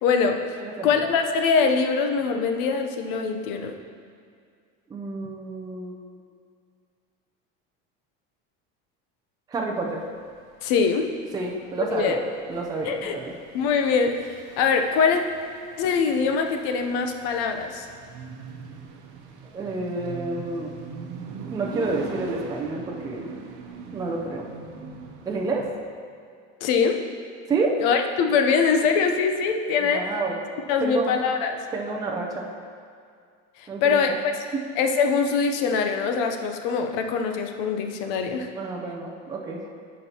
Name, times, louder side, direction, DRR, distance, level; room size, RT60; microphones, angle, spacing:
voice 1, 0.0-0.4 0.8-3.8 10.6-11.1 11.9-12.2 12.8-13.2 13.5-14.2 14.6-15.2 15.8-17.9 26.6-27.0 27.8-30.1 30.7-31.6 33.6-34.3 34.8-38.5, left 5 dB, 75° left, 5 dB, 0.8 m, -23 dB
voice 2, 0.6-1.0 4.9-5.9 9.5-10.0 11.3-12.2 12.5-13.3 19.5-20.7 21.5-23.3 23.9-24.4 25.3-25.6 27.5-27.8 29.8-30.4 30.8-31.1 31.7-32.5 33.7-34.2 34.5-34.6 38.6-39.6, right 3 dB, 15° right, -1 dB, 0.5 m, -29 dB
sound 1, 9.8-25.7, right 4 dB, 60° right, 0.9 m, -41 dB
12.5 x 5.3 x 2.9 m, 2.2 s
cardioid pair, 150°, 29 cm